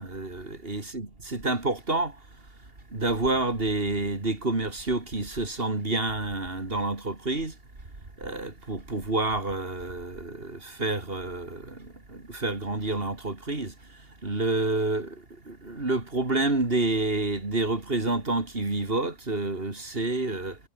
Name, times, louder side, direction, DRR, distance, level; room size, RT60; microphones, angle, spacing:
voice 1, 0.0-2.2 2.9-7.5 8.2-13.7 14.2-20.6, right 2 dB, 45° right, 3.7 m, -29 dB
omnidirectional pair, 1.3 m